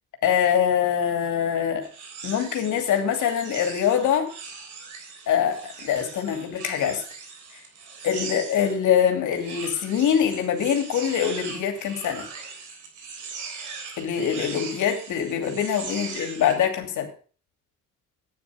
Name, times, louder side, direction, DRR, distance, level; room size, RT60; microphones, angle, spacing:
voice 1, 0.2-1.9 2.2-4.3 5.3-7.0 8.0-12.3 14.0-17.1, left 8 dB, 80° left, 5 dB, 2.8 m, -24 dB
sound 1, 1.8-8.8 9.3-16.6, right 5 dB, 80° right, 3.6 m, -39 dB
9.8 x 9.6 x 6.3 m, 0.40 s
cardioid pair, 90°, 30 cm